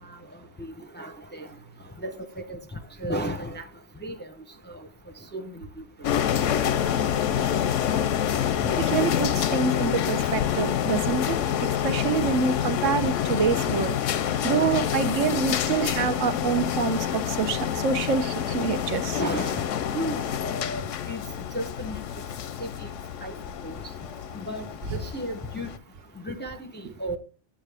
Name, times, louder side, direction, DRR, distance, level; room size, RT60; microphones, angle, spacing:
voice 1, 0.6-1.5 2.0-3.7 4.0-4.3 4.7-4.9 5.3-6.1 7.4-7.7 8.6-8.7 19.2-19.7 19.9-21.2 21.5-22.0 22.6-22.9 23.2-23.3 23.6-23.8 24.3-25.7 26.2-27.2, equal, 15° left, 0.5 m, -34 dB
sound 1, 6.0-25.8, left 9 dB, 85° left, 1.0 m, -27 dB
voice 2, 8.8-11.4 11.8-14.0 14.4-19.2, right 6 dB, 85° right, 1.2 m, -26 dB
9.1 x 7.0 x 3.4 m
omnidirectional pair, 1.3 m